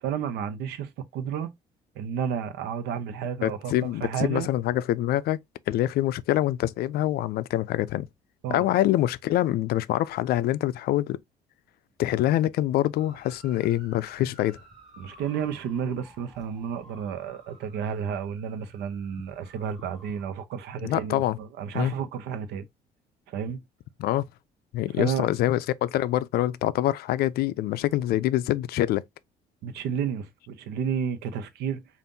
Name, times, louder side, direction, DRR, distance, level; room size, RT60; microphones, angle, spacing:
voice 1, 0.0-1.5 2.0-4.5 8.4-8.7 15.0-22.6 23.3-23.6 25.0-25.3 29.6-31.8, right 7 dB, 80° right, 0.8 m, -31 dB
voice 2, 3.4-5.4 5.7-8.1 8.5-11.2 12.0-14.6 20.8-21.4 21.7-22.0 24.0-24.2 24.7-29.0, left 14 dB, 70° left, 0.4 m, -25 dB
sound 1, 12.9-20.3, right 1 dB, ahead, 2.5 m, -53 dB
5.3 x 2.5 x 2.6 m
cardioid pair, 110°, 17 cm